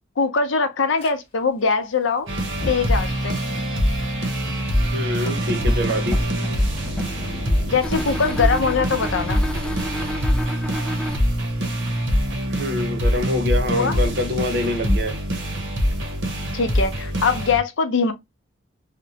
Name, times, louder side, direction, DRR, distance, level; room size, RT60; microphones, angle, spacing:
voice 1, 0.2-2.3 2.7-3.4 7.7-9.4 13.7-14.0 16.5-18.1, left 5 dB, 80° left, 0.6 m, -22 dB
Fire, 1.0-1.1 2.4-11.5, left 1 dB, 30° left, 0.8 m, -37 dB
sound 1, 2.3-17.6, equal, 85° right, 0.9 m, -24 dB
voice 2, 4.8-6.2 12.5-15.2, left 1 dB, 55° right, 0.7 m, -25 dB
sound 2, 5.2-7.3 7.8-11.2, equal, 5° left, 0.4 m, -31 dB
2.8 x 2.1 x 2.7 m
head